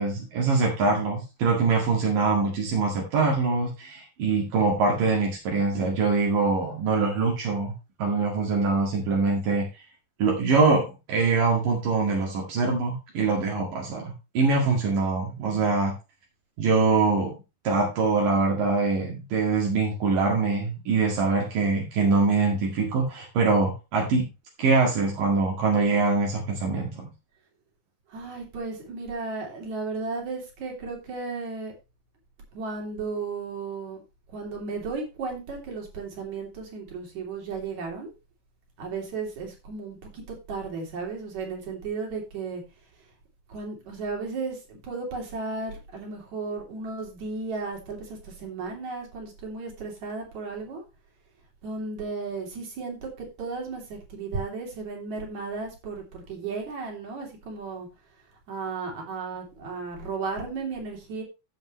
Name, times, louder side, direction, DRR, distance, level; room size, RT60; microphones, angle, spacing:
voice 1, 0.0-7.7 8.0-9.8 10.2-15.9 16.6-17.4 17.7-24.3 24.6-27.1, right 4 dB, 75° right, -1 dB, 3.7 m, -24 dB
voice 2, 15.4-15.8 28.1-31.7 32.5-34.0 34.3-38.1 38.8-42.6 43.0-43.1 43.5-50.8 51.6-57.9 58.5-61.2, right 4 dB, 60° right, 0 dB, 4.4 m, -34 dB
14.5 x 7.5 x 3.1 m, 0.27 s
omnidirectional pair, 3.9 m